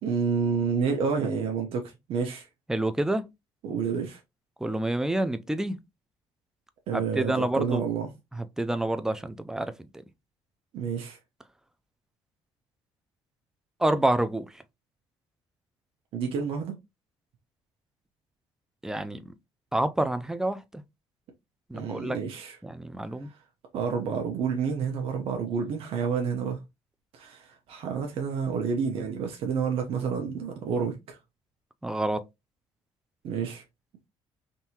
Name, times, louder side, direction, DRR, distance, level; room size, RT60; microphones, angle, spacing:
voice 1, 0.0-2.5 3.6-4.2 6.9-8.1 10.7-11.2 16.1-16.7 21.7-22.6 23.7-26.6 27.1-31.2 33.2-33.6, right 6 dB, 70° right, 0.8 m, -29 dB
voice 2, 2.7-3.3 4.6-5.8 6.9-7.8 8.6-9.7 13.8-14.5 18.8-19.2 19.7-20.6 21.7-22.2 22.6-23.3 31.8-32.2, right 1 dB, 5° right, 0.4 m, -27 dB
3.5 x 2.7 x 2.8 m
cardioid pair, 110°, 10 cm